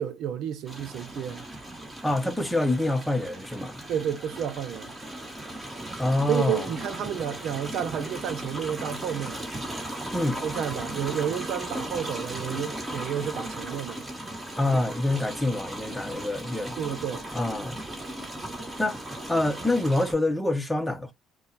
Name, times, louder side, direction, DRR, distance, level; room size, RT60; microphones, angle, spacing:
voice 1, 0.0-1.4 3.9-4.9 6.3-9.4 10.4-14.0 16.8-17.3, right 9 dB, 70° right, 0.6 m, -31 dB
sound 1, 0.7-20.1, right 1 dB, 20° right, 2.2 m, -37 dB
voice 2, 2.0-3.8 6.0-6.7 10.1-10.4 14.6-16.8 17.3-17.8 18.8-19.0 19.3-21.1, left 2 dB, 5° left, 0.9 m, -26 dB
5.1 x 2.3 x 2.9 m
supercardioid pair, 80°, 0 cm